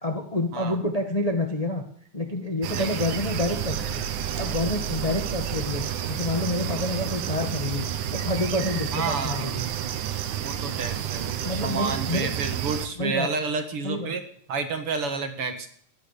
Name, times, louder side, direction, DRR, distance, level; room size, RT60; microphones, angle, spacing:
voice 1, 0.0-1.8 2.1-7.8 8.1-9.7 11.4-12.3 12.9-13.3 13.8-14.1, left 2 dB, 20° left, 4 dB, 1.0 m, -28 dB
sound 1, 2.6-12.9, right 9 dB, 80° right, 2.7 m, -30 dB
voice 2, 8.9-9.5 10.4-14.2 14.5-15.7, right 4 dB, 50° right, 7 dB, 2.4 m, -30 dB
15.0 x 13.0 x 6.8 m, 0.64 s
omnidirectional pair, 3.4 m